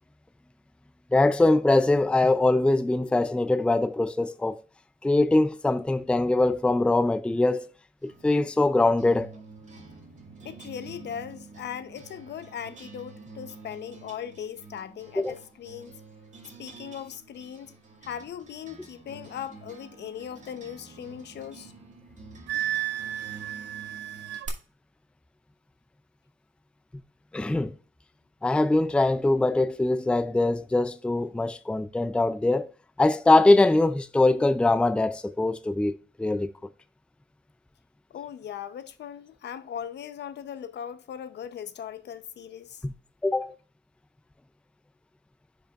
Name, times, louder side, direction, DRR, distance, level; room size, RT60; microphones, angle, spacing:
voice 1, 1.1-4.6 5.0-7.7 8.0-9.3 15.2-15.3 27.3-27.8 28.4-32.7 33.0-36.5 42.8-42.9 43.2-43.5, left 2 dB, 5° left, 0.5 m, -22 dB
sound 1, 8.0-24.5, right 4 dB, 35° right, 2.1 m, -48 dB
voice 2, 10.4-15.9 16.6-17.8 18.0-21.7 38.1-42.8, left 9 dB, 60° left, 0.8 m, -39 dB
Wind instrument woodwind instrument, 22.5-24.5, right 12 dB, 65° right, 0.7 m, -32 dB
9.8 x 5.3 x 2.4 m
cardioid pair, 90°, 20 cm